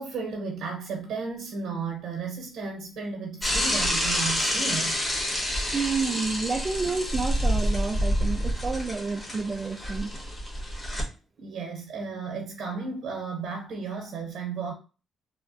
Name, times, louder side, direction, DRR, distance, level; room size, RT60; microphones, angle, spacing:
voice 1, 0.0-4.9 11.4-14.7, right 5 dB, 75° right, 0.8 m, -34 dB
Bicycle / Mechanisms, 3.4-11.0, equal, 20° left, 1.3 m, -28 dB
voice 2, 5.7-10.1, right 4 dB, 30° right, 0.3 m, -29 dB
3.3 x 2.1 x 2.5 m
cardioid pair, 90°, 0 cm